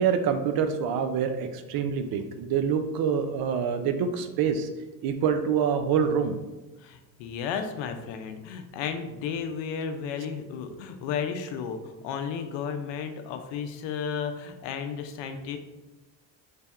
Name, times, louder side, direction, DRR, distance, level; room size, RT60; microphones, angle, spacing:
voice 1, 0.0-4.7 5.0-6.4, right 7 dB, 55° right, 8 dB, 0.5 m, -26 dB
voice 2, 6.8-15.6, left 6 dB, 75° left, 7 dB, 0.6 m, -33 dB
3.3 x 2.2 x 4.3 m, 1.1 s
supercardioid pair, 90°, 45 cm